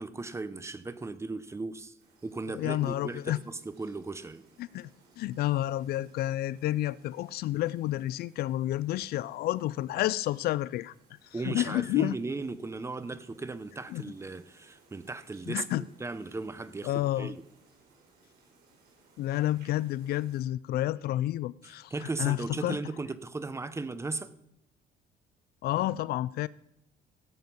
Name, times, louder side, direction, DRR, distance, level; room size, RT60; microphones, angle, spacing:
voice 1, 0.0-1.9 2.2-4.4 11.3-17.4 21.6-24.3, right 3 dB, 15° right, 0.8 m, -37 dB
sound 1, 2.0-20.4, right 3 dB, 75° right, 4.5 m, -63 dB
voice 2, 2.5-3.4 4.6-4.9 5.2-10.9 11.4-12.2 13.9-14.0 15.5-15.8 16.8-17.3 19.2-21.9 22.2-22.8 25.6-26.5, left 14 dB, 65° left, 0.4 m, -30 dB
16.0 x 8.0 x 5.4 m
cardioid pair, 110°, 17 cm